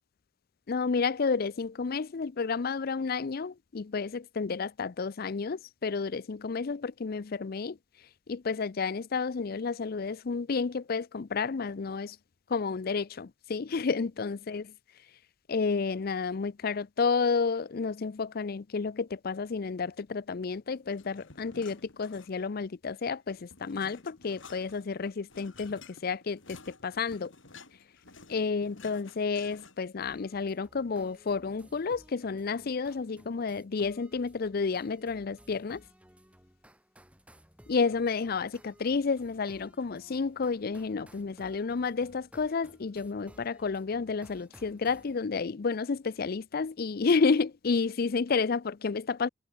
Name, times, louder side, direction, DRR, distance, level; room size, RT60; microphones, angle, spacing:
voice 1, 0.7-7.8 8.3-12.2 12.5-14.7 15.5-27.3 28.3-35.8 37.7-49.3, left 4 dB, 50° left, 0.5 m, -31 dB
sound 1, 20.9-22.6 23.0-30.0, left 4 dB, 90° left, 3.7 m, -52 dB
sound 2, 30.0-45.2, equal, 5° right, 7.4 m, -58 dB
head